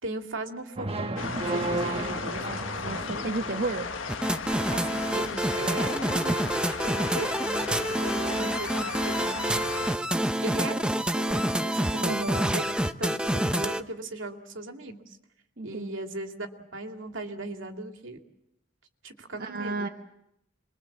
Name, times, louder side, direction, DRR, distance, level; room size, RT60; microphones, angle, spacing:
voice 1, 0.0-3.3 4.7-6.5 6.8-9.7 10.4-15.2 15.6-18.2 19.0-19.9, right 2 dB, 75° right, 4 dB, 2.6 m, -38 dB
sound 1, 0.8-3.8, right 2 dB, 30° right, 1.4 m, -33 dB
sound 2, 1.2-10.0, left 4 dB, 90° left, 1.6 m, -35 dB
voice 2, 2.7-3.9 12.0-12.4 15.6-16.1 19.3-19.9, right 3 dB, 50° right, 2 dB, 1.4 m, -32 dB
sound 3, 4.1-13.8, right 1 dB, 5° right, 0.8 m, -27 dB
27.0 x 22.5 x 7.5 m, 0.82 s
head